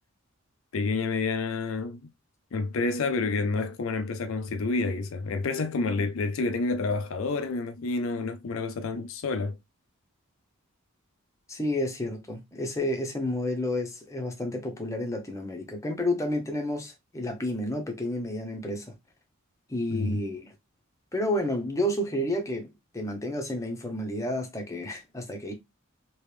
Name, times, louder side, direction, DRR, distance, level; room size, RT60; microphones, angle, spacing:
voice 1, 0.7-2.0 2.5-9.6 19.9-20.2, left 3 dB, 70° left, 0.4 m, -29 dB
voice 2, 11.5-18.9 19.7-20.5 21.1-25.5, left 1 dB, 15° left, 0.8 m, -30 dB
3.1 x 3.0 x 3.3 m
head